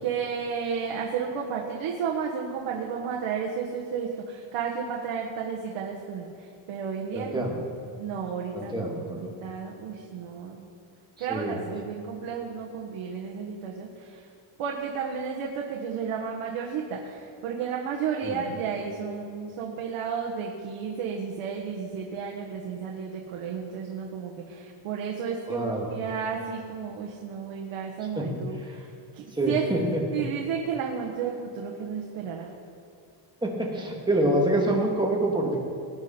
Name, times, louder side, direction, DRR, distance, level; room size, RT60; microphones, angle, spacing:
voice 1, 0.0-7.5 8.0-10.7 11.2-14.3 14.6-29.7 30.1-32.5, right 6 dB, 85° right, -1 dB, 1.5 m, -32 dB
voice 2, 7.1-7.6 8.5-9.3 11.3-11.6 18.2-18.4 25.5-25.9 28.2-28.3 29.3-30.0 33.4-35.6, right 1 dB, 10° right, -1 dB, 2.0 m, -26 dB
19.0 x 9.4 x 4.4 m, 2.4 s
cardioid pair, 145°, 48 cm